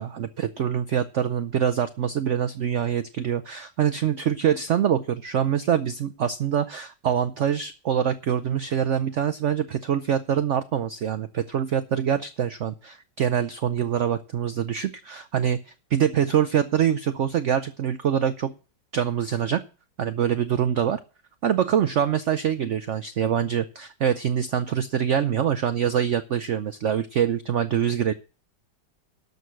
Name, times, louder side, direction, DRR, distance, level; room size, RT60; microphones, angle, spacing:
voice 1, 0.0-15.6 15.9-18.5 18.9-19.6 20.0-21.0 21.4-28.1, right 9 dB, 65° right, 11 dB, 0.7 m, -24 dB
12.0 x 6.5 x 6.2 m, 0.35 s
omnidirectional pair, 1.9 m